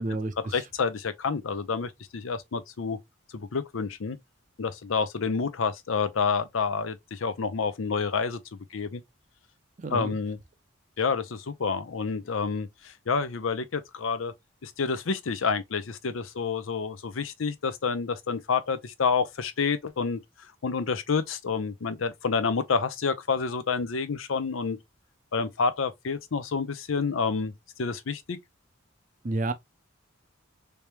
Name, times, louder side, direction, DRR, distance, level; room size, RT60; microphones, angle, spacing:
voice 1, 0.0-0.7 9.8-10.2 29.2-29.5, right 2 dB, 40° right, 0.6 m, -30 dB
voice 2, 0.5-3.0 3.3-4.2 4.6-9.0 9.9-10.4 11.0-14.3 14.6-20.2 20.6-24.8 25.3-27.5 27.8-28.4, left 5 dB, 80° left, 0.6 m, -29 dB
3.3 x 3.3 x 2.8 m
head